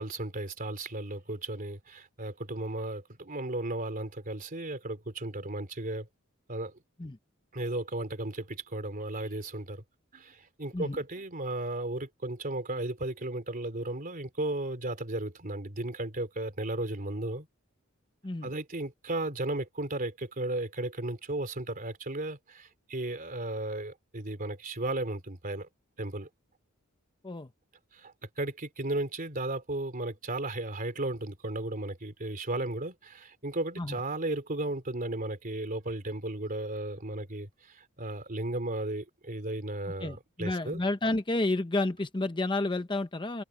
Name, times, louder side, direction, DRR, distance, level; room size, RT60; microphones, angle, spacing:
voice 1, 0.0-6.1 6.5-6.8 7.5-9.8 10.1-17.5 18.4-25.7 26.0-26.3 27.9-40.8, right 2 dB, 40° right, 3.3 m, -35 dB
voice 2, 40.0-43.4, left 2 dB, 20° left, 0.8 m, -30 dB
head